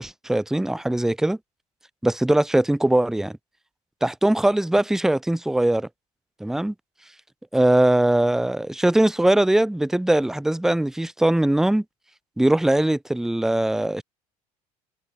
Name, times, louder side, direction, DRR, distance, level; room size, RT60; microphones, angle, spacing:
voice 1, 0.0-1.4 2.0-3.4 4.0-5.9 6.4-6.7 7.5-11.8 12.4-14.0, right 1 dB, ahead, 0.5 m, -21 dB
figure-of-eight pair, 65°, 19 cm